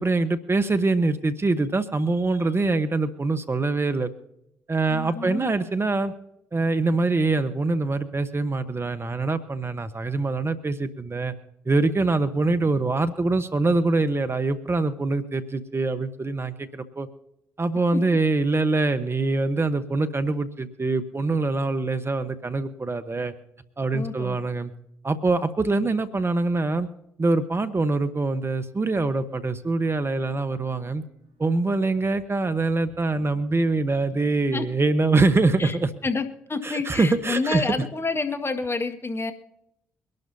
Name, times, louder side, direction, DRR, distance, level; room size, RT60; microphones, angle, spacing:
voice 1, 0.0-4.1 4.7-6.1 6.5-11.3 11.6-17.1 17.6-23.3 23.8-24.7 25.0-26.9 27.2-31.0 31.4-35.9 36.6-37.6, right 3 dB, 30° right, 10 dB, 1.2 m, -24 dB
voice 2, 4.9-5.4 23.9-24.4 34.5-34.6 35.6-35.8 36.0-39.3, left 3 dB, 30° left, 6 dB, 1.9 m, -29 dB
sound 1, 29.0-35.4, left 1 dB, 75° right, 3.2 m, -54 dB
24.0 x 12.0 x 2.8 m, 0.80 s
hypercardioid pair, 45°, 8 cm